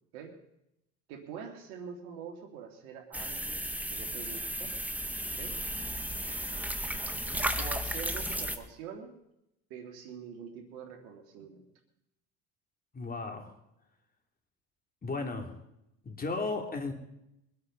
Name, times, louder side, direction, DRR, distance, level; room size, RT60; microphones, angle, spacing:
voice 1, 1.1-4.7 5.2-5.6 7.6-9.1 9.7-11.7, right 7 dB, 80° right, 4 dB, 2.9 m, -45 dB
sound 1, 3.1-8.6, equal, 5° right, 1.5 m, -34 dB
voice 2, 6.9-7.4 12.9-13.5 15.0-15.6 16.0-16.9, left 3 dB, 25° left, 3 dB, 3.4 m, -36 dB
23.0 x 8.8 x 5.6 m, 0.83 s
supercardioid pair, 85°, 35 cm